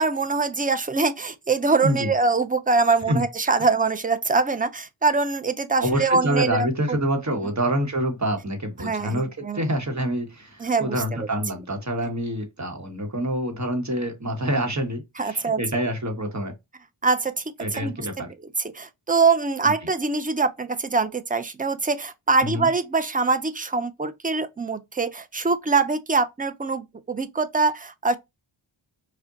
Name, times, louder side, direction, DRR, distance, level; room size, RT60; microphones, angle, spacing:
voice 1, 0.0-6.7 8.8-9.6 10.6-11.3 15.2-15.6 17.0-17.4 17.7-18.1 18.7-28.2, right 4 dB, 20° right, 0.4 m, -23 dB
voice 2, 1.8-2.1 3.1-3.2 5.8-16.5 17.6-18.3 19.6-19.7 22.4-22.7, right 1 dB, 35° right, 1.1 m, -26 dB
4.9 x 2.2 x 2.8 m
wide cardioid pair, 70°, 49 cm